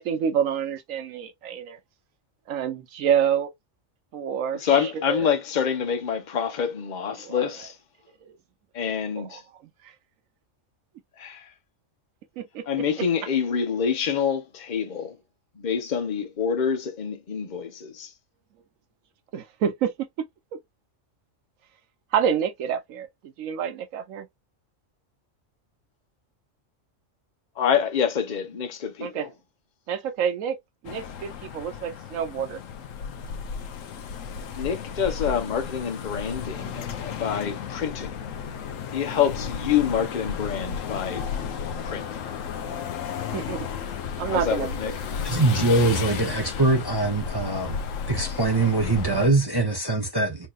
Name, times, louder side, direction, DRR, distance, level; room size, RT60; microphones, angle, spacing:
voice 1, 0.0-1.8 2.5-3.5 4.1-5.3 7.2-7.5 8.2-8.4 9.2-9.9 12.4-12.8 19.3-19.9 20.2-20.3 20.5-20.6 22.1-24.3 29.0-29.3 29.9-30.6 30.8-32.6 35.0-35.3 43.2-43.7 44.2-44.9, right 8 dB, 90° right, 1.1 m, -28 dB
voice 2, 4.6-7.8 8.7-9.4 11.2-11.5 12.7-15.2 15.6-18.1 27.6-29.3 34.6-38.2 38.9-41.3 41.8-42.2 44.3-44.9, left 7 dB, 40° left, 0.9 m, -27 dB
sound 1, 30.8-49.3, left 7 dB, 85° left, 1.1 m, -33 dB
voice 3, 45.2-47.7 48.1-50.5, right 3 dB, 20° right, 0.8 m, -23 dB
4.6 x 2.9 x 2.4 m
omnidirectional pair, 1.3 m